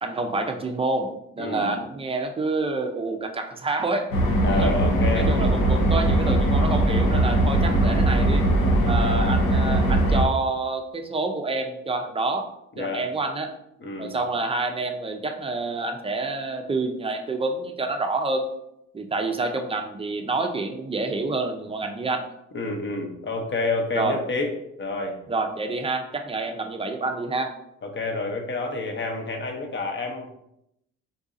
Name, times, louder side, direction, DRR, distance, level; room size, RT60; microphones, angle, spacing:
voice 1, 0.0-4.1 4.6-4.7 5.1-8.4 8.9-12.5 12.8-13.5 14.0-18.5 18.9-22.2 23.9-24.2 25.3-27.5, right 3 dB, 20° right, 5 dB, 0.4 m, -28 dB
voice 2, 1.4-1.7 4.4-5.5 7.7-7.9 12.8-13.0 13.8-14.1 22.5-24.5 24.8-25.2 27.8-30.3, left 3 dB, 40° left, 3 dB, 0.7 m, -29 dB
sound 1, 4.1-10.2, right 1 dB, 90° left, 0.7 m, -20 dB
3.9 x 2.6 x 2.5 m, 0.80 s
cardioid pair, 90°, 30 cm